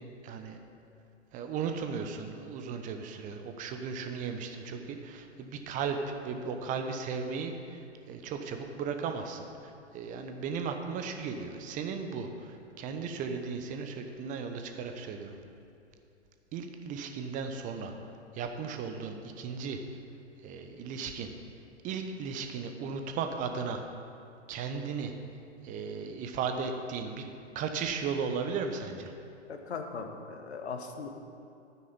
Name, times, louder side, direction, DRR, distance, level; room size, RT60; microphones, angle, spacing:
voice 1, 0.2-0.6 1.3-6.0 6.2-7.8 8.1-15.4 16.5-17.9 18.3-19.8 20.4-21.3 21.8-23.8 24.5-25.1 25.6-27.2 27.5-29.1, right 5 dB, 20° right, 6 dB, 0.9 m, -36 dB
voice 2, 29.5-31.1, left 5 dB, 65° left, 5 dB, 1.4 m, -39 dB
11.0 x 9.5 x 5.3 m, 2.7 s
figure-of-eight pair, 110°, 35 cm